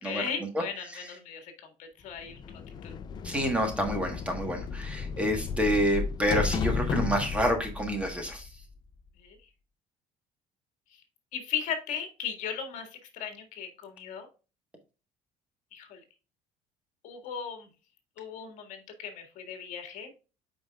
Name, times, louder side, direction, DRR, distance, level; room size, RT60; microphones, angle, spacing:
voice 1, 0.0-1.5 1.8-2.4 2.8-2.9 9.2-9.4 11.3-14.3 15.7-16.0 17.0-17.7 18.2-20.1, left 7 dB, 60° left, 6 dB, 1.9 m, -37 dB
sound 1, 2.2-8.9, left 5 dB, 30° left, 0.4 m, -34 dB
voice 2, 3.2-8.5, equal, 10° right, 3 dB, 1.4 m, -28 dB
8.8 x 5.1 x 2.3 m, 0.32 s
cardioid pair, 160°, 14 cm